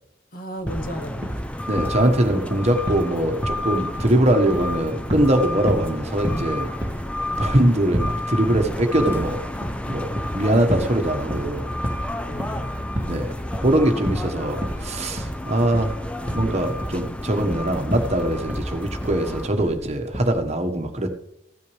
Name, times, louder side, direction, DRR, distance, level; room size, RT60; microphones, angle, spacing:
voice 1, 0.3-1.5 7.3-7.5 12.3-12.8 14.7-14.9, equal, 50° left, 7 dB, 1.0 m, -35 dB
sound 1, 0.7-19.5, left 1 dB, 5° left, 0.5 m, -31 dB
sound 2, 0.7-0.9 1.2-1.5 1.8-3.1 3.4-4.2 4.5-5.4 5.7-5.9 6.2-6.5 6.8-8.2 8.5-8.7 9.1-10.4 10.7-11.0 11.2-12.1 12.4-12.7 12.9-13.2 13.5-13.8 14.0-14.3 14.6-14.9 15.2-15.4 15.7-16.0 16.3-17.0 17.4-17.6 17.9-18.2 18.5-18.7 19.0-19.3 19.6-19.8 20.1-20.4, equal, 10° right, 1.3 m, -29 dB
voice 2, 1.7-6.7 7.4-9.4 9.9-10.1 10.3-11.7 13.1-15.9 16.3-21.1, right 1 dB, 35° right, 5 dB, 1.3 m, -22 dB
15.5 x 9.4 x 3.3 m, 0.77 s
head